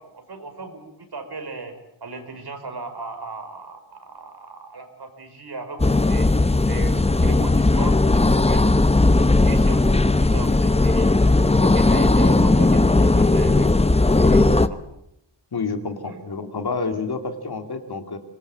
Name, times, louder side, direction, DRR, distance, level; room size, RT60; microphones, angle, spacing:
voice 1, 0.0-1.7 2.0-6.3 6.6-8.7 9.2-11.2 11.4-14.8 16.0-16.2, right 3 dB, 60° right, 6 dB, 5.1 m, -37 dB
sound 1, 5.8-14.7, left 2 dB, 15° left, 0.9 m, -17 dB
voice 2, 15.5-18.2, left 4 dB, 60° left, 7 dB, 2.7 m, -28 dB
24.5 x 20.5 x 8.6 m, 0.80 s
wide cardioid pair, 100°, 43 cm